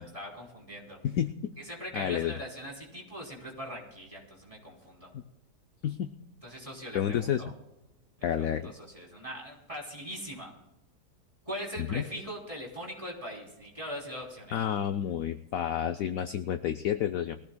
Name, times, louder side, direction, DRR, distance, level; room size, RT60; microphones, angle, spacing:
voice 1, 0.0-1.0 1.7-5.1 6.4-7.5 8.4-10.5 11.4-14.6, equal, 20° right, -3 dB, 3.4 m, -41 dB
voice 2, 1.9-2.3 5.1-5.2 5.8-6.1 6.9-7.4 8.2-8.7 11.8-12.0 14.5-17.4, left 10 dB, 65° left, 9 dB, 0.9 m, -30 dB
22.0 x 15.0 x 2.2 m, 0.94 s
omnidirectional pair, 1.8 m